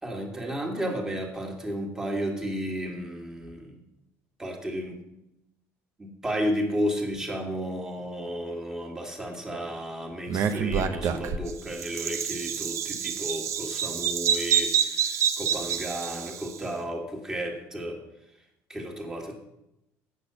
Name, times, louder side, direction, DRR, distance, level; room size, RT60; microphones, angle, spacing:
voice 1, 0.0-3.8 4.4-5.0 6.0-18.0 18.7-19.4, equal, 10° right, 1 dB, 2.0 m, -33 dB
Bird vocalization bird call bird song, 10.3-16.6, right 8 dB, 55° right, 0.8 m, -27 dB
8.3 x 6.1 x 6.9 m, 0.87 s
cardioid pair, 115°, 6 cm